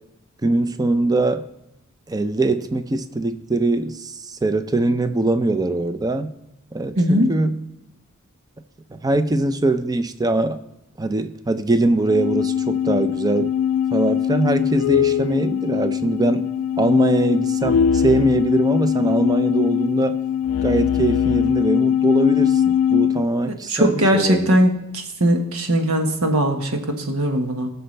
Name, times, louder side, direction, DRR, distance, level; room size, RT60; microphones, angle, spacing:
voice 1, 0.4-1.4 2.1-6.3 6.7-7.7 8.9-10.6 11.0-13.5 13.9-16.5 16.8-20.2 20.6-24.6, right 2 dB, 20° right, 0.5 m, -22 dB
voice 2, 6.9-7.3 23.4-27.7, equal, 90° right, 1.4 m, -20 dB
sound 1, 12.0-23.2, left 9 dB, 80° left, 0.3 m, -21 dB
19.5 x 6.8 x 3.3 m
head